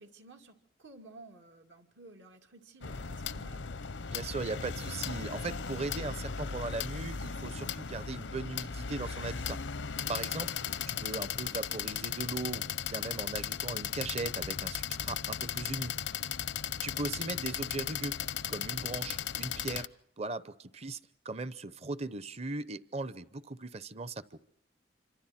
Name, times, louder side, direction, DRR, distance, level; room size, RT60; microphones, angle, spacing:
voice 1, 0.0-3.6 17.0-17.2, right 2 dB, 75° right, 4 dB, 2.6 m, -54 dB
sound 1, 2.8-19.9, left 8 dB, 85° left, 0.8 m, -36 dB
voice 2, 4.0-9.6 10.1-10.5 10.9-16.0 16.8-18.2 18.5-19.9 20.2-21.0 21.2-24.4, right 3 dB, 35° right, 16 dB, 0.8 m, -38 dB
27.5 x 25.5 x 4.3 m, 0.73 s
head